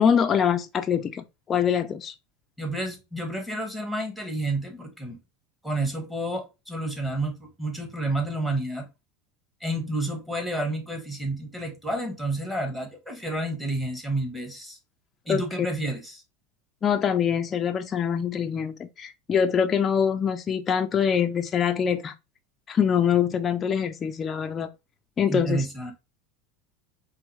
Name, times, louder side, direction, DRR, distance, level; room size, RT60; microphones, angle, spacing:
voice 1, 0.0-2.1 15.3-15.4 16.8-22.1 22.7-24.7 25.2-25.7, left 7 dB, 30° left, 0.4 m, -24 dB
voice 2, 2.6-5.2 5.6-8.9 9.6-14.8 15.3-16.2 25.3-25.9, right 1 dB, 5° right, 1.5 m, -30 dB
4.5 x 3.1 x 3.1 m
supercardioid pair, 125°, 0 cm